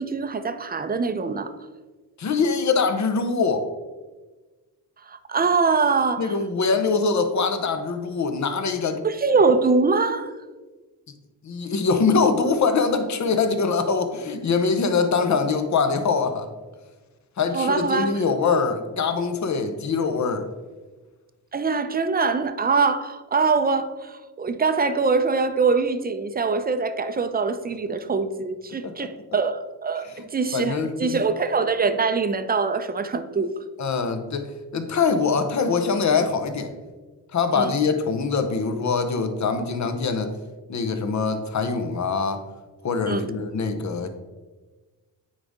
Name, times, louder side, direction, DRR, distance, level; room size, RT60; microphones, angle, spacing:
voice 1, 0.0-1.5 5.1-6.4 9.0-10.3 17.5-18.2 21.5-33.5 37.5-37.7 43.1-43.3, right 4 dB, 25° right, 0.5 m, -23 dB
voice 2, 2.2-3.7 6.2-9.0 11.4-16.5 17.4-20.5 28.8-28.9 30.1-30.3 30.5-31.2 33.8-36.7 37.3-40.3 40.7-42.4 42.8-44.1, left 4 dB, 50° left, 0.9 m, -23 dB
9.5 x 4.0 x 3.6 m
cardioid pair, 90°, 37 cm